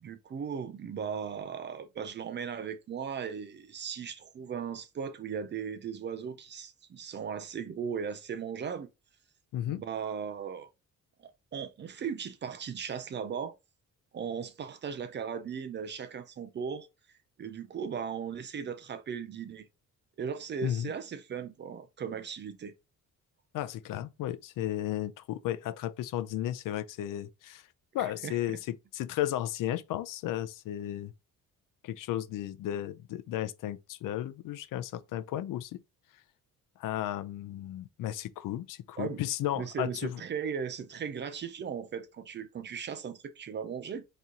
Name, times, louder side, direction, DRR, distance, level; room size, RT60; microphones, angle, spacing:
voice 1, 0.0-8.9 9.8-10.7 11.2-13.5 14.1-16.9 17.4-19.7 20.2-22.7 28.0-28.4 39.0-39.2 39.6-44.0, right 7 dB, 35° right, 0.5 m, -37 dB
voice 2, 20.6-20.9 23.5-27.7 27.9-31.1 31.8-35.8 36.8-40.2, left 12 dB, 80° left, 0.5 m, -34 dB
4.1 x 3.0 x 3.7 m
cardioid pair, 165°, 32 cm